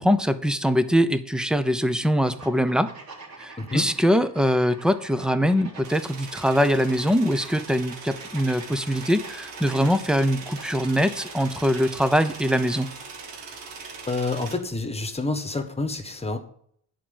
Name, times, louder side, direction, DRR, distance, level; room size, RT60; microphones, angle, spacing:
voice 1, 0.0-2.9 3.4-12.9, equal, ahead, 12 dB, 0.6 m, -22 dB
sound 1, 2.2-13.0, right 3 dB, 55° right, 3.9 m, -46 dB
voice 2, 3.6-3.9 14.1-16.4, left 3 dB, 15° left, 8 dB, 1.4 m, -28 dB
sound 2, 5.8-14.6, right 4 dB, 80° right, 2.4 m, -41 dB
10.5 x 4.8 x 7.8 m, 0.64 s
cardioid pair, 125°, 42 cm